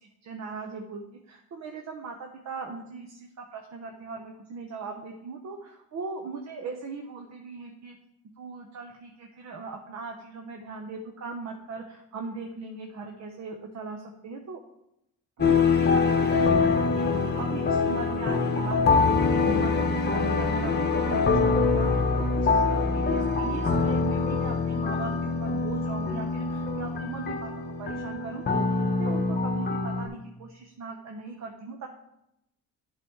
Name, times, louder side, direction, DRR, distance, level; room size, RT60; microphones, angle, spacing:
voice 1, 0.0-8.0 8.4-14.6 15.4-19.9 20.1-27.5 27.8-31.9, right 4 dB, 60° right, 2 dB, 1.1 m, -39 dB
sound 1, 15.4-30.1, left 4 dB, 35° left, 1.2 m, -24 dB
11.0 x 4.2 x 4.6 m, 0.82 s
cardioid pair, 90°, 30 cm